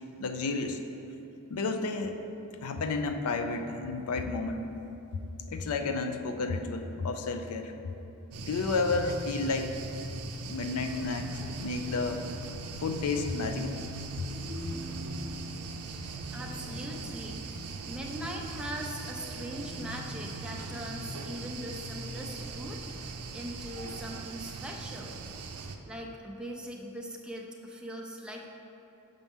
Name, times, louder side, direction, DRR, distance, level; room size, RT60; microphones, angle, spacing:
voice 1, 0.2-0.8 1.5-2.1 2.6-4.7 5.5-7.7 8.5-9.7 10.5-12.2 12.8-13.8 14.2-14.3, left 3 dB, 75° left, 7 dB, 0.5 m, -31 dB
sound 1, 8.3-25.8, right 3 dB, 85° right, 0.5 m, -40 dB
sound 2, 10.6-21.1, equal, 45° right, 0.6 m, -47 dB
voice 2, 16.3-17.5 17.8-22.8 23.1-25.1 25.9-28.5, equal, 5° right, -1 dB, 0.5 m, -41 dB
7.1 x 5.1 x 3.6 m, 2.9 s
head